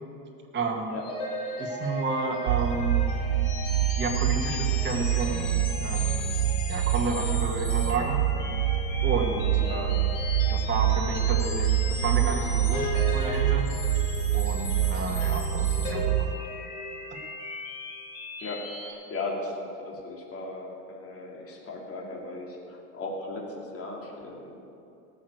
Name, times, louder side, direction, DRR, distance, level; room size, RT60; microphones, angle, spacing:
voice 1, 0.5-1.0 1.6-3.2 4.0-6.4 6.7-8.2 9.0-10.0 10.5-13.7 14.3-16.5 17.1-17.2, right 3 dB, 20° right, 0 dB, 2.1 m, -31 dB
sound 1, 1.0-18.9, left 2 dB, 55° left, 4.1 m, -36 dB
sound 2, 2.5-16.3, right 11 dB, 90° right, 0.6 m, -26 dB
voice 2, 18.4-24.5, left 2 dB, 25° left, -2 dB, 2.9 m, -37 dB
18.0 x 6.6 x 8.2 m, 2.7 s
hypercardioid pair, 95°, 49 cm